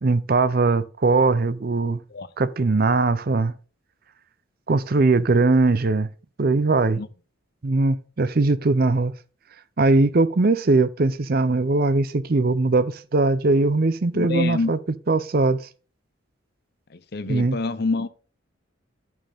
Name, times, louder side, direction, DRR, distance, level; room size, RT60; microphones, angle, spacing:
voice 1, 0.0-2.0 2.4-3.5 4.7-6.1 6.4-7.0 7.6-9.1 9.8-14.8 15.1-15.6 17.3-17.6, right 3 dB, 45° right, 0.6 m, -20 dB
voice 2, 14.1-14.7 17.1-18.1, left 3 dB, 50° left, 0.7 m, -26 dB
11.5 x 9.1 x 3.5 m
head